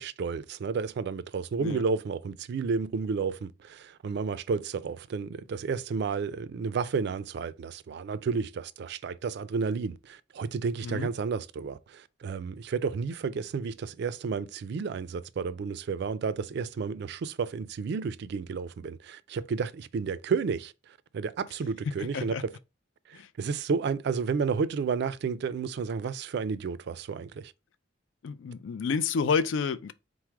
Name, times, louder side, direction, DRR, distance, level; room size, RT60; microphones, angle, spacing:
voice 1, 0.0-20.7 21.1-22.5 23.1-27.5, right 5 dB, 60° right, 0.3 m, -31 dB
voice 2, 22.0-22.4 23.1-23.3 28.2-29.9, left 5 dB, 90° left, 0.4 m, -29 dB
4.5 x 2.0 x 4.6 m
head